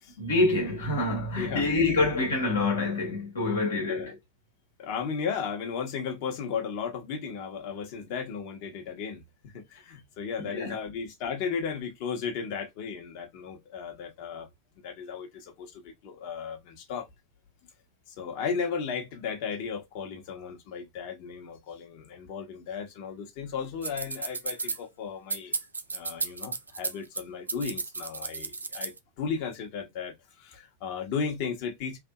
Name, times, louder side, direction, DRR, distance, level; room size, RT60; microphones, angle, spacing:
voice 1, 0.2-4.1 10.5-10.7, left 2 dB, 65° left, 1.3 m, -26 dB
voice 2, 1.4-1.7 3.9-4.1 4.8-14.5 14.8-17.1 18.1-25.6 25.9-32.0, left 6 dB, 45° left, 1.1 m, -35 dB
sound 1, 23.8-24.8 25.3-27.2 27.5-29.0, right 4 dB, 75° right, 0.4 m, -33 dB
3.4 x 2.7 x 2.3 m
figure-of-eight pair, 90°, 0 cm